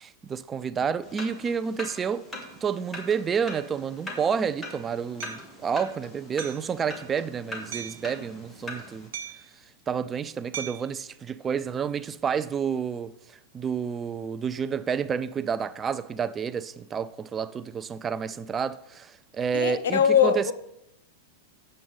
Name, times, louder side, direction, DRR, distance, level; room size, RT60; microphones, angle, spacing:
voice 1, 0.0-2.2 2.6-9.1 9.9-13.1 13.5-20.5, right 6 dB, 20° right, 0.3 m, -29 dB
sound 1, 1.0-9.1, left 1 dB, 10° left, 1.7 m, -42 dB
Hammer, 5.2-5.4 6.4-6.7 7.7-8.1 9.1-9.5 10.5-10.9, right 8 dB, 80° right, 0.7 m, -38 dB
voice 2, 19.5-20.5, left 8 dB, 85° left, 0.8 m, -21 dB
7.8 x 7.6 x 3.9 m
supercardioid pair, 140°, 0 cm